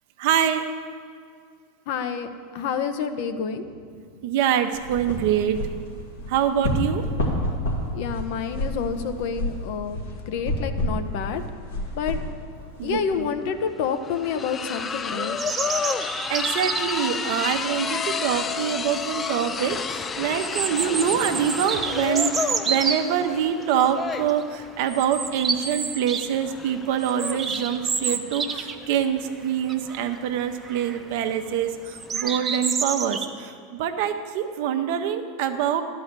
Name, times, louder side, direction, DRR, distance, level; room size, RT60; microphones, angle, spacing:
voice 1, 0.2-0.7 4.2-5.6 6.3-7.0 12.8-13.3 16.3-35.8, right 9 dB, 65° right, 7 dB, 0.8 m, -25 dB
voice 2, 1.9-3.6 7.9-10.0 10.3-11.4 11.9-12.2 12.8-15.4 17.2-17.3, left 6 dB, 65° left, 8 dB, 0.7 m, -28 dB
sound 1, 4.7-13.2, left 1 dB, 85° left, 2.3 m, -30 dB
sound 2, 12.9-13.0 13.3-32.1, left 5 dB, 25° left, 0.4 m, -32 dB
sound 3, 15.4-17.1 18.6-18.7 19.1-19.2 20.3-23.0 23.7-24.0 24.3-24.4 24.9-26.3 26.6-28.9 29.2-29.3 29.7-30.2 30.6-31.0 31.9-33.2, right 5 dB, 25° right, 0.7 m, -28 dB
11.5 x 4.8 x 8.1 m, 2.1 s
hypercardioid pair, 100°, 0 cm